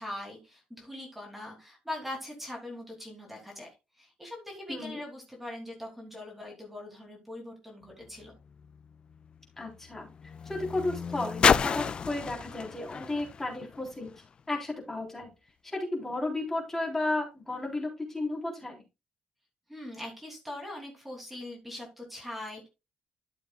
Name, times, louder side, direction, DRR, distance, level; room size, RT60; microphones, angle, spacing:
voice 1, 0.0-3.7 4.0-8.3 19.7-22.7, left 1 dB, 5° right, 0 dB, 3.0 m, -41 dB
voice 2, 4.7-5.0 9.6-10.1 10.5-14.1 14.5-15.3 15.6-18.8, left 2 dB, 15° left, -1 dB, 3.6 m, -33 dB
sound 1, 7.9-14.4 15.2-15.3, left 6 dB, 35° left, 0.4 m, -31 dB
13.0 x 6.9 x 2.3 m, 0.25 s
cardioid pair, 145°, 3 cm